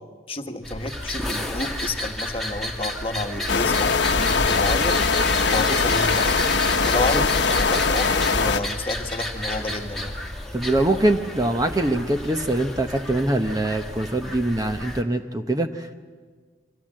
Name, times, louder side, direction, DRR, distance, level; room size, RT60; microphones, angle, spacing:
voice 1, 0.3-6.3 6.8-10.1, left 2 dB, 30° left, 5 dB, 1.5 m, -30 dB
sound 1, 0.6-15.0, left 1 dB, ahead, 2.1 m, -31 dB
sound 2, 3.5-8.6, left 4 dB, 65° left, 1.1 m, -21 dB
voice 2, 10.5-16.0, right 1 dB, 20° right, 6 dB, 1.0 m, -23 dB
28.5 x 25.0 x 7.7 m, 1.5 s
head